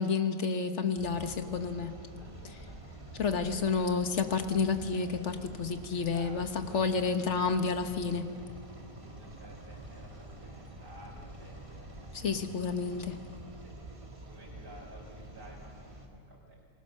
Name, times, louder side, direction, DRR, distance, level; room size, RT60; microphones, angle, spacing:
voice 1, 0.0-2.0 2.4-2.6 3.1-8.3 12.1-13.2, left 5 dB, 45° left, 7 dB, 1.4 m, -30 dB
sound 1, 1.0-16.1, right 1 dB, 20° right, 2.1 m, -47 dB
voice 2, 2.1-2.9 5.9-7.7 8.0-8.2 8.7-13.1 13.5-16.6, right 1 dB, 35° right, -5 dB, 4.8 m, -54 dB
28.0 x 20.5 x 6.5 m, 2.2 s
omnidirectional pair, 1.9 m